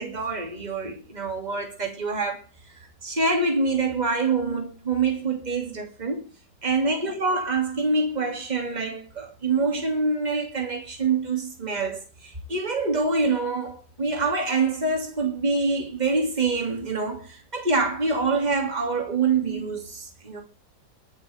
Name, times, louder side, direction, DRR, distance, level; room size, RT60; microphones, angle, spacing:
voice 1, 0.0-2.4 3.0-6.2 6.6-20.4, right 3 dB, 25° right, 2.8 m, -26 dB
21.5 x 8.5 x 3.6 m
omnidirectional pair, 1.9 m